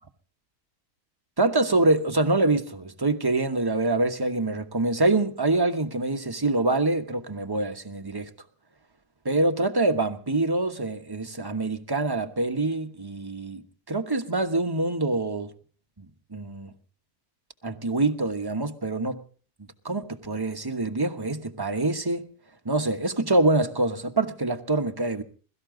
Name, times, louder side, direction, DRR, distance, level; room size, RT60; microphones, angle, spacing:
voice 1, 1.4-8.3 9.2-15.5 16.0-16.1 16.3-16.7 17.6-19.2 19.8-22.3 22.6-25.2, right 2 dB, 15° right, 1.0 m, -25 dB
22.0 x 14.0 x 3.8 m
omnidirectional pair, 1.7 m